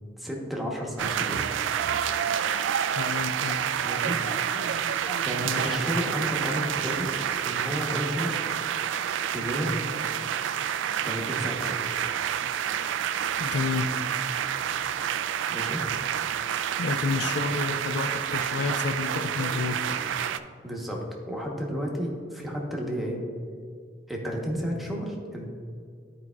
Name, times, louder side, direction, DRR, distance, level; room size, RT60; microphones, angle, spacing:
voice 1, 0.2-1.5 3.8-4.2 5.1-7.1 7.4-8.5 9.2-9.9 11.0-12.0 15.5-15.8 20.6-21.0 21.3-23.2 24.1-25.5, equal, ahead, -2 dB, 1.0 m, -32 dB
sound 1, 1.0-20.4, right 9 dB, 80° right, 0.3 m, -29 dB
sound 2, 2.0-2.8 3.4-3.7 4.2-4.8 5.0-5.3 5.9-6.7 7.8-8.0, equal, 25° left, 0.9 m, -43 dB
voice 2, 2.9-3.6 5.4-5.8 13.4-14.0 16.8-19.8, left 4 dB, 65° left, 7 dB, 0.4 m, -30 dB
11.0 x 4.7 x 2.3 m, 2.2 s
head